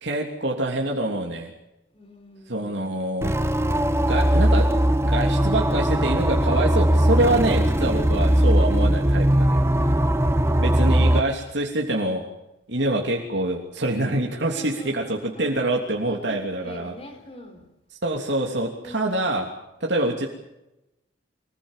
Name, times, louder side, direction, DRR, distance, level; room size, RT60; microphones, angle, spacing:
voice 1, 0.0-1.5 2.5-3.4 4.0-4.7 5.0-9.7 10.6-12.2 12.7-16.9 18.0-19.5 19.8-20.3, right 1 dB, 70° right, 0 dB, 3.2 m, -25 dB
voice 2, 1.9-3.0 9.7-11.2 14.5-15.7 16.0-17.7 18.8-19.2, left 1 dB, 30° left, 6 dB, 4.3 m, -44 dB
sound 1, 3.2-11.2, right 1 dB, 15° right, 1.0 m, -20 dB
26.0 x 20.5 x 7.5 m, 0.91 s
head